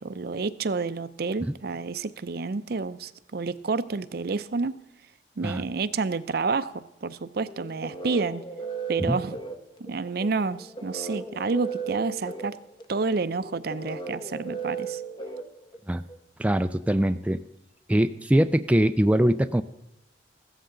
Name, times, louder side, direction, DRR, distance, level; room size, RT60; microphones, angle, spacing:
voice 1, 0.0-4.7 5.4-8.4 8.9-9.4 9.8-12.6 12.9-15.0, right 4 dB, 60° right, 14 dB, 0.6 m, -29 dB
sound 1, 7.5-16.2, right 5 dB, 25° left, 0.9 m, -36 dB
voice 2, 16.4-17.4 17.9-19.6, right 1 dB, 10° right, 8 dB, 0.4 m, -22 dB
15.5 x 13.5 x 3.8 m, 0.94 s
head